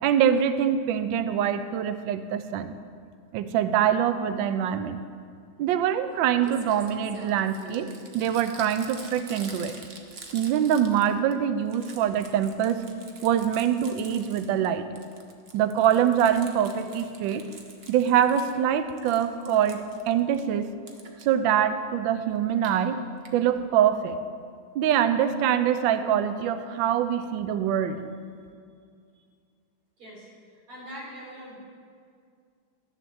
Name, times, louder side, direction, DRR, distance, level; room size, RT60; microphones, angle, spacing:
voice 1, 0.0-2.7 3.3-5.0 5.6-7.9 8.1-9.8 10.3-12.8 13.2-14.9 15.5-17.4 17.9-20.7 21.2-23.0 23.3-24.2 24.7-28.0, right 9 dB, 75° right, 11 dB, 1.3 m, -24 dB
Crumpling crinkling, 6.1-6.2 6.4-11.3 11.6-14.7 15.0-18.6 18.9-20.4 20.9-21.2 22.4-22.7 23.2-23.3 23.6-23.7 23.9-24.0, right 3 dB, 45° right, 0.9 m, -46 dB
voice 2, 30.7-31.6, equal, 90° right, -5 dB, 4.5 m, -42 dB
12.0 x 7.1 x 7.0 m, 2.2 s
omnidirectional pair, 2.3 m